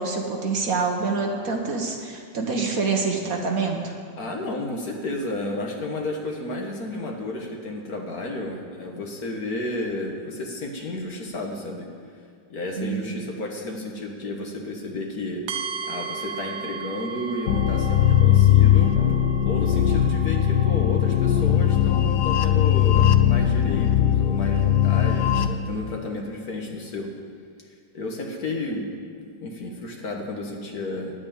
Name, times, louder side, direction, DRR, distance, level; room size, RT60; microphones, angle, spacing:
voice 1, 0.0-4.0 12.8-13.2, right 4 dB, 50° right, 2 dB, 1.5 m, -26 dB
voice 2, 4.2-11.9 12.5-15.4 15.8-18.9 19.4-27.1 27.9-28.9 29.4-31.1, left 2 dB, 55° left, 1 dB, 1.8 m, -32 dB
sound 1, 15.5-21.4, right 5 dB, 80° right, 0.5 m, -36 dB
sound 2, 17.5-25.5, left 10 dB, 70° left, 1.2 m, -19 dB
10.5 x 8.7 x 8.8 m, 2.2 s
omnidirectional pair, 2.0 m